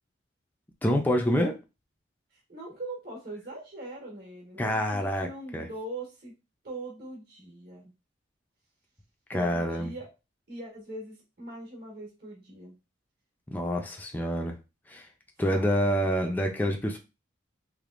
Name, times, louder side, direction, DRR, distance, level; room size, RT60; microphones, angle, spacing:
voice 1, 0.8-1.5 4.6-5.3 5.5-5.7 9.3-9.9 13.5-14.6 14.9-15.1 15.4-17.0, equal, 10° left, 0.4 m, -27 dB
voice 2, 2.3-6.3 6.6-7.9 9.3-10.1 10.5-12.7 15.5-15.9, right 2 dB, 55° right, 1.5 m, -41 dB
3.4 x 3.2 x 2.5 m
head